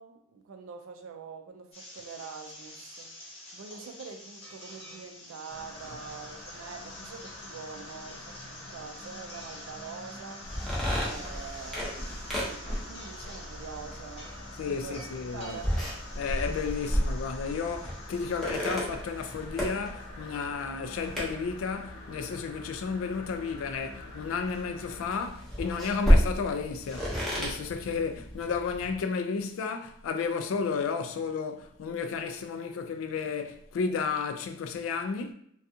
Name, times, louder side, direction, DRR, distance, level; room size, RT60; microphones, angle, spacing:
voice 1, 0.0-3.2 3.5-10.5 10.9-14.3 14.6-15.1 15.3-15.8, right 5 dB, 70° right, 0.3 m, -45 dB
sound 1, 1.7-18.7, left 1 dB, 30° left, 1.0 m, -48 dB
sound 2, 5.5-25.1, left 2 dB, 90° left, 0.7 m, -47 dB
sound 3, 10.4-29.0, equal, ahead, 0.7 m, -32 dB
voice 2, 14.6-15.6 16.2-35.3, left 5 dB, 75° left, 0.3 m, -33 dB
2.4 x 2.3 x 2.6 m
head